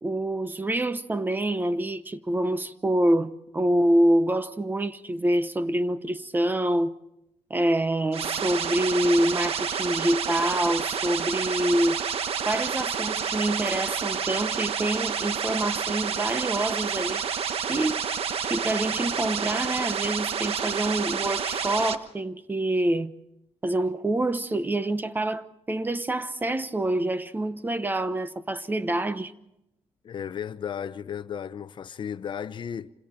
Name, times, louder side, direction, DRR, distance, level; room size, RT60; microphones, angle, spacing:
voice 1, 0.0-6.9 7.5-12.0 12.5-17.2 17.6-18.0 18.5-23.1 23.6-29.3, right 1 dB, 20° right, 0.9 m, -26 dB
sound 1, 8.1-21.9, right 7 dB, 65° right, 1.3 m, -29 dB
voice 2, 30.0-32.9, left 8 dB, 50° left, 0.7 m, -34 dB
27.5 x 26.5 x 4.5 m
cardioid pair, 125°, 11 cm